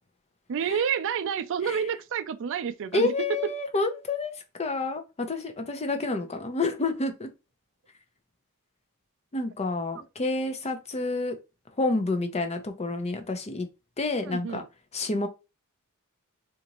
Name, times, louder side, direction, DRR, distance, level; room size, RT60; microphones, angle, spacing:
voice 1, 0.5-3.1 3.4-3.5 14.2-14.7, right 7 dB, 60° right, 0.4 m, -29 dB
voice 2, 2.9-7.3 9.3-11.3 11.8-13.7 14.0-14.6 14.9-15.3, left 3 dB, 30° left, 0.6 m, -29 dB
3.9 x 2.5 x 2.9 m
head